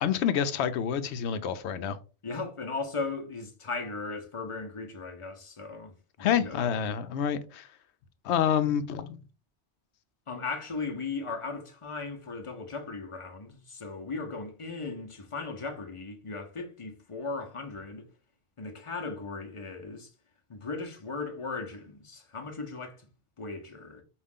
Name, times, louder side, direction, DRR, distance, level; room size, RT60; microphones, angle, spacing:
voice 1, 0.0-2.0 6.2-7.7 8.2-9.2, left 8 dB, 75° left, 0.8 m, -28 dB
voice 2, 2.2-6.8 10.3-18.0 18.6-20.1 20.5-23.1 23.4-24.0, left 4 dB, 30° left, 0.8 m, -37 dB
5.1 x 2.4 x 3.6 m
omnidirectional pair, 1.2 m